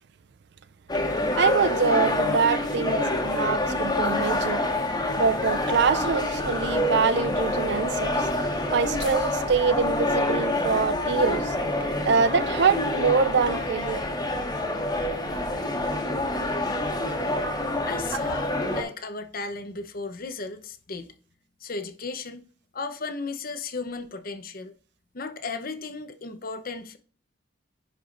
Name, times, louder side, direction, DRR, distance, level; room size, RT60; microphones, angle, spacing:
sound 1, 0.9-18.8, left 1 dB, 20° left, 1.6 m, -27 dB
voice 1, 1.0-4.7 5.2-8.3 8.7-11.5 11.8-14.0, right 5 dB, 65° right, 0.4 m, -25 dB
voice 2, 17.8-21.1 21.6-22.4 22.7-24.7 25.1-27.0, left 4 dB, 50° left, 0.8 m, -35 dB
10.5 x 4.9 x 2.5 m
head